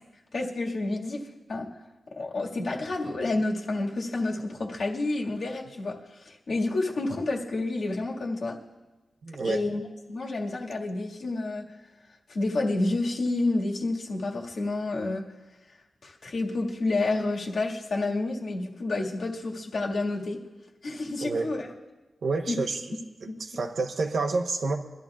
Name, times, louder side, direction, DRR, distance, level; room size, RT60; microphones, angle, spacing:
voice 1, 0.3-1.2 1.5-1.7 2.1-8.6 9.4-9.8 10.1-11.6 12.3-15.2 16.0-20.4 20.8-21.7 22.5-22.6 23.3-23.4, left 2 dB, 55° left, -2 dB, 1.9 m, -29 dB
voice 2, 9.2-9.6 21.2-21.5 22.2-22.8 23.2-24.8, right 3 dB, 60° right, 3 dB, 1.0 m, -28 dB
24.5 x 12.5 x 2.4 m, 1.2 s
wide cardioid pair, 175°, 0 cm